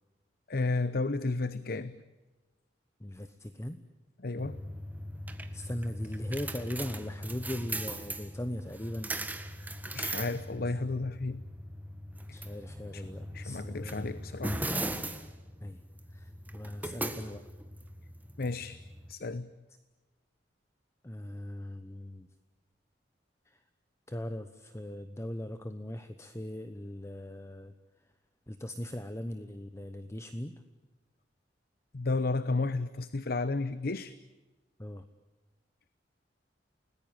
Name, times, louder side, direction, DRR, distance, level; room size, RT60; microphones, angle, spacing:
voice 1, 0.5-2.0 4.2-4.6 9.9-11.4 12.3-12.4 12.9-13.0 13.3-14.6 16.8-17.0 18.4-18.8 19.1-19.5 31.9-34.1, left 3 dB, 60° left, 14 dB, 0.8 m, -32 dB
voice 2, 3.0-3.8 5.5-9.2 10.7-10.8 12.3-14.1 15.6-15.8 16.1-17.4 21.0-22.3 23.5-23.6 24.1-27.7 28.5-30.5 34.8-35.0, left 1 dB, 15° left, 10 dB, 1.0 m, -39 dB
sound 1, 4.4-19.1, right 1 dB, 10° right, 1.6 m, -39 dB
30.0 x 19.5 x 9.1 m, 1.2 s
head